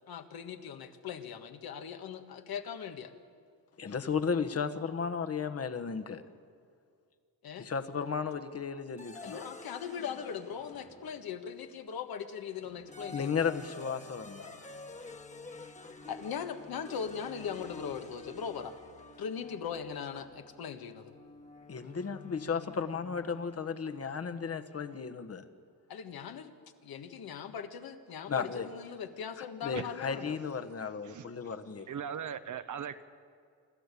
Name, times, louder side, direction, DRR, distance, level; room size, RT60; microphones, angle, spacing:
voice 1, 0.1-3.1 7.4-7.7 9.2-13.4 16.1-18.7 19.2-21.1 25.9-26.5 26.8-30.4, left 7 dB, 70° left, 1.6 m, -40 dB
voice 2, 3.8-6.2 7.6-9.4 13.1-14.7 21.7-25.4 28.3-28.7 29.6-31.9, left 6 dB, 40° left, 1.3 m, -34 dB
sound 1, 9.0-11.6 12.6-23.7, left 3 dB, 20° left, 1.5 m, -50 dB
voice 3, 31.9-33.0, right 8 dB, 50° right, 1.1 m, -38 dB
27.5 x 12.5 x 8.4 m
cardioid pair, 105°, 38 cm